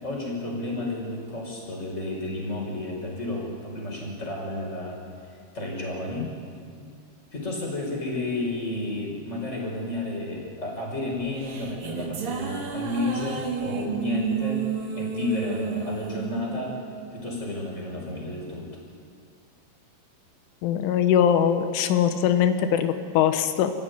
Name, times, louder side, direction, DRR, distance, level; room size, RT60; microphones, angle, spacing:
voice 1, 0.0-5.0 5.5-6.3 6.8-6.9 7.3-14.6 14.9-16.8 17.1-18.7, left 2 dB, 15° left, -1 dB, 5.4 m, -31 dB
sound 1, 11.2-17.7, right 6 dB, 55° right, 3.5 m, -31 dB
voice 2, 20.6-23.7, left 9 dB, 90° left, 8 dB, 3.6 m, -21 dB
29.0 x 15.0 x 9.5 m, 2.2 s
omnidirectional pair, 5.4 m